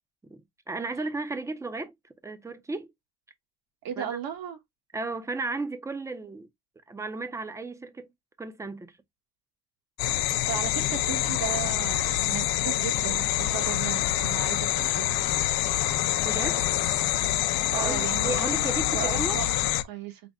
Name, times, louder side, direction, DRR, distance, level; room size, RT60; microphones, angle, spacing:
voice 1, 0.3-1.9 2.2-2.9 4.0-4.2 4.9-6.5 6.9-8.1 8.4-9.0 16.2-16.6 17.7-19.4, right 3 dB, 10° right, 0.5 m, -34 dB
voice 2, 3.8-4.6 10.2-15.2 17.7-18.4 18.9-20.2, right 10 dB, 65° right, 1.3 m, -35 dB
sound 1, 10.0-19.8, left 14 dB, 75° left, 0.6 m, -26 dB
5.1 x 2.1 x 3.4 m
cardioid pair, 140°, 37 cm